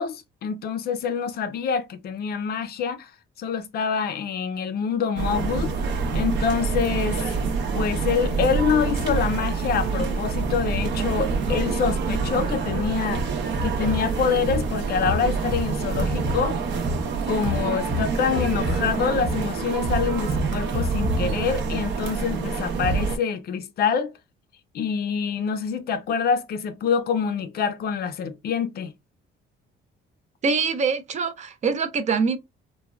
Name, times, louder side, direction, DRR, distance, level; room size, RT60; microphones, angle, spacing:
voice 1, 0.0-3.1 3.4-5.7 6.1-7.2 7.7-13.2 13.6-16.6 17.3-24.1 24.7-28.9, left 6 dB, 50° left, 0.4 m, -26 dB
sound 1, 5.2-23.2, right 4 dB, 60° right, 0.8 m, -26 dB
voice 2, 30.4-32.4, right 5 dB, 35° right, 0.4 m, -24 dB
3.3 x 2.2 x 2.3 m
cardioid pair, 160°, 21 cm